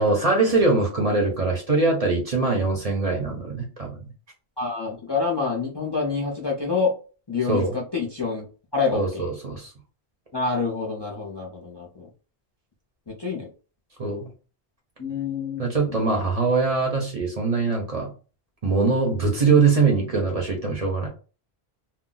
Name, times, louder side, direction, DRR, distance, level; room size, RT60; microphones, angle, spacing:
voice 1, 0.0-4.0 7.5-7.8 8.9-9.7 14.0-14.3 15.6-18.1 18.6-21.1, right 3 dB, 40° right, 1 dB, 0.7 m, -22 dB
voice 2, 4.6-6.9 7.3-8.5 8.7-9.3 10.3-12.1 13.1-13.5 15.0-16.2, left 4 dB, 30° left, -3 dB, 0.5 m, -27 dB
2.3 x 2.1 x 3.8 m, 0.36 s
omnidirectional pair, 1.1 m